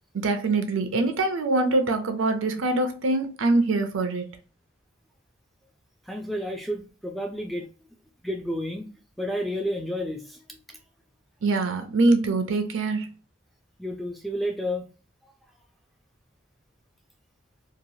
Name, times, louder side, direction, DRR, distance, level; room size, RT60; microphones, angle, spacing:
voice 1, 0.2-4.4 11.4-13.1, right 2 dB, 85° right, 0.6 m, -24 dB
voice 2, 6.1-7.7 8.2-8.9 9.2-10.4 13.8-14.9, equal, ahead, 0.3 m, -30 dB
2.9 x 2.3 x 2.7 m
head